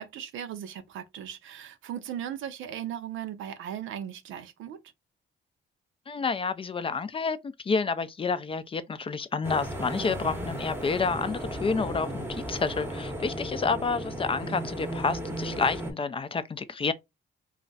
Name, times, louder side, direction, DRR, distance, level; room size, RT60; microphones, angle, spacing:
voice 1, 0.0-4.8 10.0-10.5, right 10 dB, 80° right, 0.6 m, -38 dB
voice 2, 6.1-16.9, left 4 dB, 30° left, 0.4 m, -29 dB
sound 1, 9.4-15.9, right 1 dB, 10° right, 0.8 m, -35 dB
2.4 x 2.1 x 3.8 m
cardioid pair, 90°, 20 cm